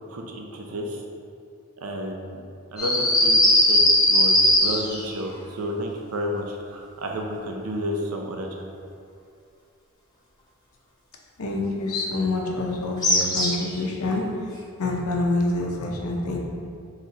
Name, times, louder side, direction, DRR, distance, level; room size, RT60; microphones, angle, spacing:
voice 1, 0.1-1.0 1.8-2.4 2.7-8.7, equal, 85° right, 1 dB, 0.6 m, -31 dB
sound 1, 2.8-5.1 13.0-13.7, left 1 dB, 20° left, 0.9 m, -18 dB
voice 2, 11.4-14.4 14.8-16.4, left 2 dB, 90° left, 0 dB, 0.7 m, -26 dB
4.0 x 3.2 x 4.1 m, 2.4 s
head